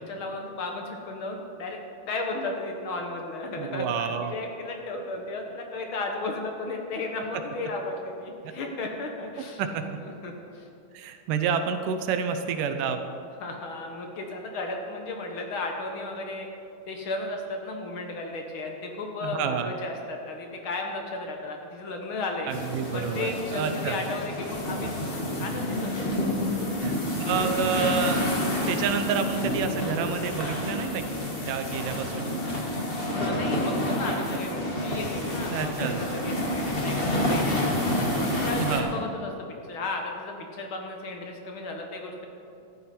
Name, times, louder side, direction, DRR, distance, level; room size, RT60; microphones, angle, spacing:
voice 1, 0.1-1.8 2.0-9.6 10.0-10.7 13.4-16.5 16.9-22.5 22.9-26.7 33.2-37.9 38.4-39.3 39.7-42.2, left 2 dB, 60° left, 2 dB, 1.4 m, -34 dB
voice 2, 3.6-4.3 8.4-8.5 9.6-9.8 10.9-13.0 19.2-19.7 22.5-24.0 26.8-28.3 28.7-31.1 31.5-32.3 35.5-36.0 38.6-38.9, right 6 dB, 80° right, 7 dB, 2.3 m, -29 dB
sound 1, 22.5-38.8, left 1 dB, 85° left, 0.5 m, -29 dB
sound 2, 26.0-31.2, equal, 35° right, 1.2 m, -45 dB
14.0 x 12.5 x 4.3 m, 2.7 s
omnidirectional pair, 3.9 m